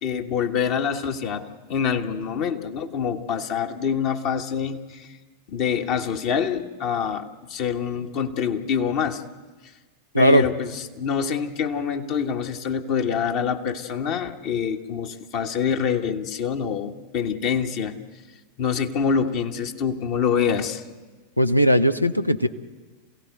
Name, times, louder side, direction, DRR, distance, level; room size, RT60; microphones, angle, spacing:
voice 1, 0.0-5.2 5.5-9.2 10.2-17.9 18.6-20.8, left 7 dB, 45° left, 5 dB, 1.4 m, -26 dB
voice 2, 21.4-22.5, equal, 90° left, 11 dB, 0.8 m, -18 dB
27.0 x 17.0 x 7.9 m, 1.3 s
figure-of-eight pair, 90°, 0 cm